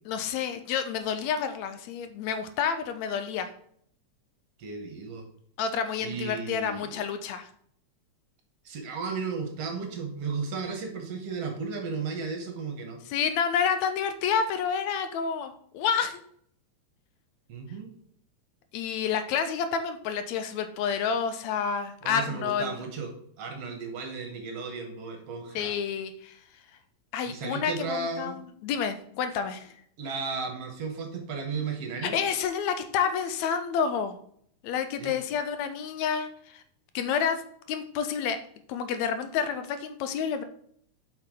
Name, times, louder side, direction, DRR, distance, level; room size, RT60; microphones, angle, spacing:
voice 1, 0.1-3.5 5.6-7.5 13.1-16.2 18.7-22.8 25.6-26.4 27.1-29.7 32.0-34.2 34.6-36.6 37.0-37.4 37.7-38.4 38.7-40.4, left 7 dB, 80° left, 9 dB, 1.9 m, -29 dB
voice 2, 4.6-5.3 6.0-6.9 8.7-13.0 17.5-17.9 22.0-23.1 23.4-25.7 27.3-28.4 30.0-32.2 35.0-35.1, right 4 dB, 60° right, 4 dB, 2.1 m, -34 dB
7.9 x 5.7 x 3.8 m, 0.64 s
omnidirectional pair, 3.3 m